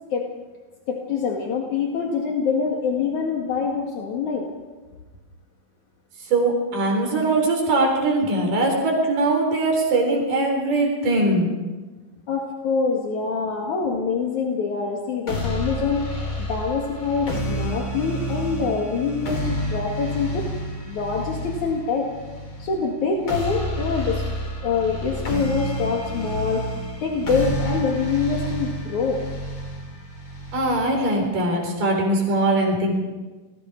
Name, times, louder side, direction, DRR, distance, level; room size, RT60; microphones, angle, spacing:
voice 1, 0.9-4.5 12.3-20.5 20.8-22.1 22.6-24.3 24.6-26.7 27.0-29.2, left 5 dB, 65° left, 0 dB, 3.4 m, -25 dB
voice 2, 6.3-11.5 30.5-33.0, right 2 dB, 90° right, 1 dB, 5.5 m, -21 dB
sound 1, 15.3-31.3, equal, 40° left, 4.7 m, -30 dB
28.5 x 20.5 x 4.8 m, 1.3 s
omnidirectional pair, 3.7 m